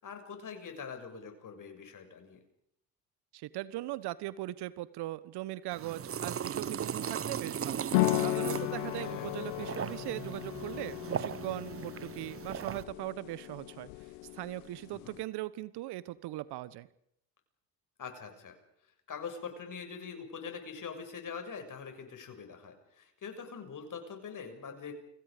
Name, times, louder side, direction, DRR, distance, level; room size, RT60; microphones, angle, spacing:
voice 1, 0.0-2.4 9.0-9.3 14.9-15.2 18.0-18.6 19.1-24.9, left 6 dB, 45° left, 6 dB, 7.0 m, -43 dB
voice 2, 3.3-7.9 8.2-13.9 14.3-16.9, right 16 dB, 60° right, 18 dB, 1.3 m, -39 dB
sound 1, 5.7-12.8, right 8 dB, 30° right, 1.0 m, -38 dB
sound 2, 7.9-15.2, left 21 dB, 70° left, 0.9 m, -35 dB
29.5 x 25.5 x 5.2 m, 0.72 s
hypercardioid pair, 60°, 45 cm